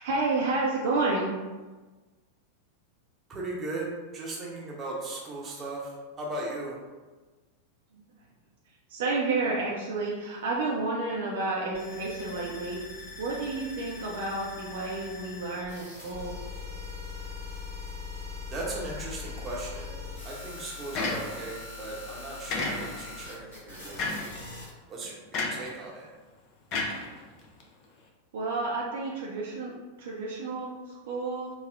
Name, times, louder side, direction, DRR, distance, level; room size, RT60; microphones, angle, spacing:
voice 1, 0.0-1.3 7.9-8.0 8.9-12.8 13.2-16.4 28.3-29.7 30.0-31.5, right 3 dB, 55° right, -3 dB, 0.5 m, -30 dB
voice 2, 3.3-6.8 18.5-19.9 20.2-24.4 24.9-26.1, right 2 dB, 25° right, -3 dB, 0.8 m, -37 dB
sound 1, 11.7-24.7, left 4 dB, 65° left, 1.0 m, -41 dB
sound 2, 20.9-21.6 22.5-23.2 24.0-24.4 25.3-25.7 26.7-27.6, left 3 dB, 40° left, 0.5 m, -31 dB
4.0 x 2.0 x 2.4 m, 1.3 s
figure-of-eight pair, 90°, 0 cm